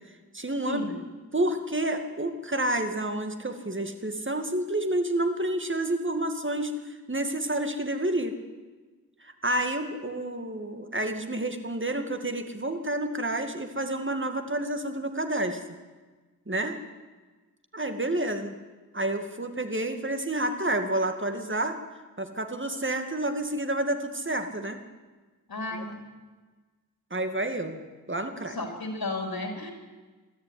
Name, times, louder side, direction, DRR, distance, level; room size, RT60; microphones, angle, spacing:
voice 1, 0.3-0.8 1.3-8.3 9.2-15.6 16.5-16.8 17.7-18.6 18.9-21.8 22.2-24.8 25.7-25.8 27.1-27.8 28.1-28.6, right 1 dB, 35° right, 7 dB, 2.3 m, -29 dB
voice 2, 25.5-25.9 28.5-29.7, left 2 dB, 90° left, 3 dB, 3.9 m, -33 dB
23.0 x 13.5 x 9.6 m, 1.3 s
wide cardioid pair, 65°, 35 cm